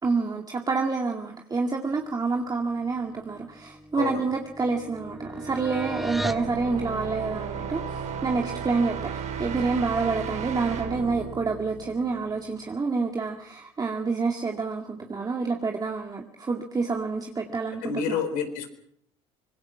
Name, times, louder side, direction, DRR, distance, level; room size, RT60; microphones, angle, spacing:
voice 1, 0.0-18.2, right 4 dB, 25° right, 2 dB, 2.3 m, -28 dB
sound 1, 3.3-6.5, equal, ahead, 2.3 m, -36 dB
voice 2, 3.9-4.3 17.8-18.7, left 7 dB, 70° left, 8 dB, 4.2 m, -29 dB
sound 2, 4.9-12.6, right 7 dB, 50° right, 3.8 m, -35 dB
25.0 x 21.0 x 5.9 m, 0.71 s
hypercardioid pair, 75°, 15 cm